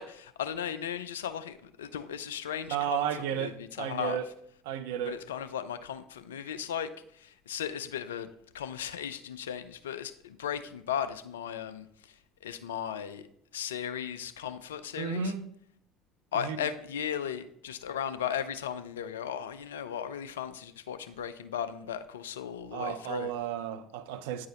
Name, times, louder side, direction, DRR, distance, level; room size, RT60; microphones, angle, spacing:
voice 1, 0.0-3.0 3.3-4.2 5.1-8.3 8.5-12.1 12.4-13.3 13.5-15.3 16.3-23.3, left 9 dB, 80° left, 0.4 m, -36 dB
voice 2, 2.7-4.3 4.7-5.2 15.0-15.5 16.3-16.6 22.7-24.5, right 9 dB, 70° right, 0.5 m, -33 dB
8.8 x 4.7 x 2.8 m
hypercardioid pair, 60°, 0 cm